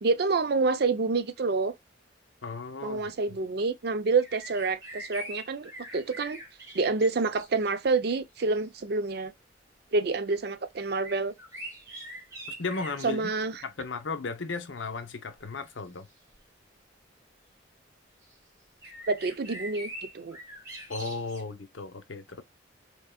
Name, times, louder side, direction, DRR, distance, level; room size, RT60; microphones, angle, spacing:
voice 1, 0.0-1.7 2.8-6.4 6.7-9.3 9.9-11.3 13.0-13.5 19.1-20.4, right 4 dB, 55° right, 0.5 m, -28 dB
voice 2, 2.4-3.4 12.5-13.3 13.6-16.1 20.9-22.4, left 3 dB, 80° left, 0.8 m, -35 dB
sound 1, 4.2-7.7 8.4-8.5 10.9-13.2 15.2-15.6 16.3-16.4 18.2-18.3 18.8-21.4, right 1 dB, 15° right, 1.6 m, -43 dB
3.8 x 3.5 x 2.2 m
head